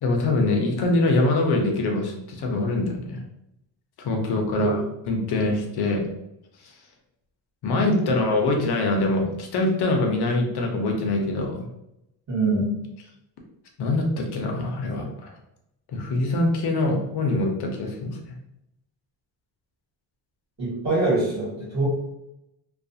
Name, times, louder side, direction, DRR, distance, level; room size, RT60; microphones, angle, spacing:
voice 1, 0.0-3.2 4.0-4.8 5.1-6.0 7.6-11.7 13.8-15.3 15.9-18.3, left 2 dB, 60° left, 2 dB, 0.6 m, -24 dB
voice 2, 12.3-12.8 20.6-21.9, right 2 dB, 35° right, -6 dB, 1.1 m, -24 dB
2.4 x 2.3 x 2.6 m, 0.84 s
cardioid pair, 140°, 45 cm